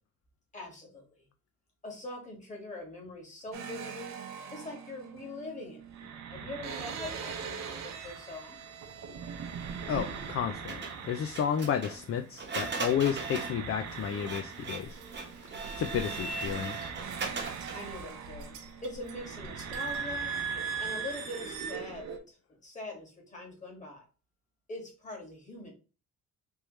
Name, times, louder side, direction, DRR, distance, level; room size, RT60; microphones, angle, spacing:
voice 1, 0.5-1.3 1.8-4.2 4.5-5.8 6.3-8.6 17.7-20.4 20.8-22.4 22.6-24.1 24.7-25.7, left 2 dB, 25° left, -1 dB, 1.9 m, -43 dB
sound 1, 3.5-12.2 12.4-22.2, right 6 dB, 65° right, 0.8 m, -40 dB
voice 2, 9.9-15.0 15.8-16.8, left 8 dB, 50° left, 7 dB, 0.4 m, -32 dB
Printer, 10.7-17.9, right 4 dB, 40° right, 1.1 m, -39 dB
sound 2, 14.8-20.2, right 1 dB, 85° right, 1.2 m, -51 dB
3.5 x 3.0 x 3.1 m, 0.33 s
cardioid pair, 90°, 30 cm